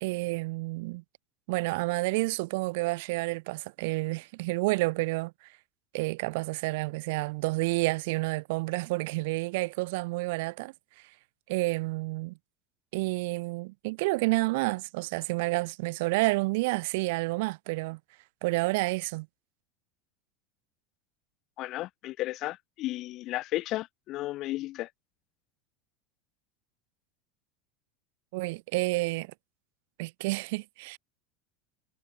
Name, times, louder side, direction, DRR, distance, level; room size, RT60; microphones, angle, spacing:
voice 1, 0.0-1.0 1.5-5.3 5.9-10.7 11.5-12.3 12.9-18.0 18.4-19.3 28.3-29.3 30.0-31.0, right 24 dB, 60° right, 0.7 m, -29 dB
voice 2, 21.6-24.9, left 16 dB, 45° left, 4.1 m, -34 dB
figure-of-eight pair, 80°, 0 cm